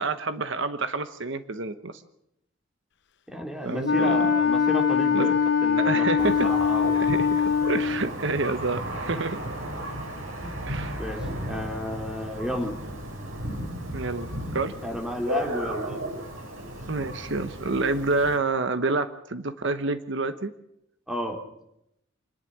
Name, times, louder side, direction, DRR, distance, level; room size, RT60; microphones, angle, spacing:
voice 1, 0.0-2.0 3.6-4.4 5.1-5.4 5.8-6.5 6.9-9.4 10.6-11.0 13.9-14.7 16.9-20.5, right 3 dB, 65° right, 11 dB, 1.1 m, -28 dB
voice 2, 3.3-5.3 5.6-6.8 10.4-10.7 11.0-12.8 14.8-16.0 21.1-21.4, equal, 5° right, 2 dB, 3.3 m, -32 dB
Wind instrument woodwind instrument, 3.8-8.1, left 7 dB, 60° left, 0.7 m, -22 dB
Thunder, 6.2-18.4, right 1 dB, 80° right, 4.8 m, -35 dB
26.5 x 11.0 x 10.0 m, 0.81 s
head